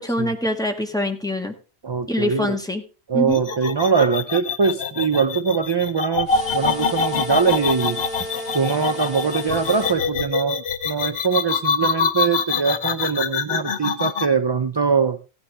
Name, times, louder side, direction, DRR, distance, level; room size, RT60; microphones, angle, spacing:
voice 1, 0.0-1.5 2.1-2.8 3.1-3.4, left 1 dB, 5° left, 3 dB, 1.6 m, -24 dB
voice 2, 1.8-2.6 3.1-8.0 8.5-15.2, right 5 dB, 35° right, 11 dB, 0.4 m, -22 dB
sound 1, 3.3-14.3, left 5 dB, 65° left, 1.1 m, -24 dB
sound 2, 6.3-10.0, left 1 dB, 45° left, 6.5 m, -33 dB
15.5 x 9.5 x 3.4 m, 0.34 s
omnidirectional pair, 1.1 m